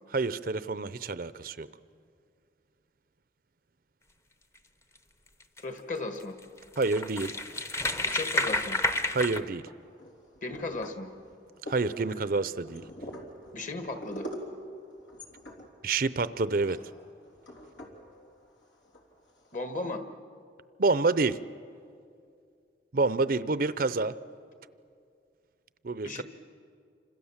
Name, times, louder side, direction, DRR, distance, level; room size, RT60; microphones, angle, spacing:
voice 1, 0.1-1.7 6.8-7.3 9.1-9.6 11.7-12.8 15.8-16.8 20.8-21.4 22.9-24.2 25.8-26.2, right 3 dB, 50° right, 15 dB, 0.6 m, -28 dB
sound 1, 5.4-5.6 6.2-6.3 6.6-9.4, left 1 dB, 15° left, 0.8 m, -30 dB
voice 2, 5.6-6.4 8.0-8.8 10.4-11.1 13.5-14.3 19.5-20.0 26.0-26.2, left 2 dB, 45° left, 7 dB, 1.7 m, -35 dB
sound 2, 7.3-7.8 8.3-9.2 9.7-19.6, equal, 90° left, 3.5 m, -45 dB
29.0 x 26.0 x 7.3 m, 2.4 s
head